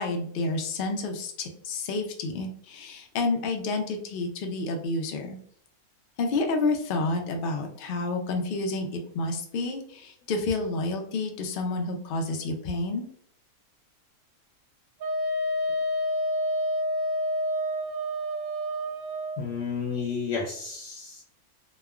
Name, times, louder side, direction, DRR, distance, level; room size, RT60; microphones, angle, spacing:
voice 1, 0.0-5.4 6.2-13.1, left 3 dB, 90° left, 3 dB, 0.4 m, -29 dB
Wind instrument woodwind instrument, 15.0-19.4, equal, 75° right, 0.5 m, -28 dB
voice 2, 19.4-21.2, left 5 dB, 70° left, -1 dB, 0.9 m, -31 dB
3.1 x 2.1 x 2.3 m, 0.63 s
omnidirectional pair, 1.6 m